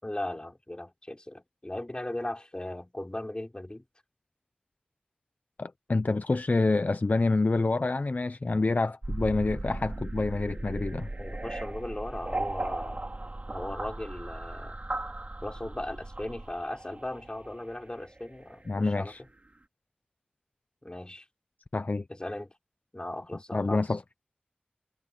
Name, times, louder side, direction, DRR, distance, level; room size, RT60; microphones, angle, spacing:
voice 1, 0.0-3.8 11.2-13.0 13.5-14.8 15.4-19.1 20.8-21.3 22.1-22.5 22.9-24.0, left 1 dB, 30° left, 5.0 m, -37 dB
voice 2, 5.6-11.1 18.7-19.2 21.7-22.0 23.5-24.0, left 3 dB, 60° left, 0.6 m, -27 dB
sound 1, 9.0-19.0, right 2 dB, 45° right, 2.5 m, -37 dB
wide cardioid pair, 60°, 3 cm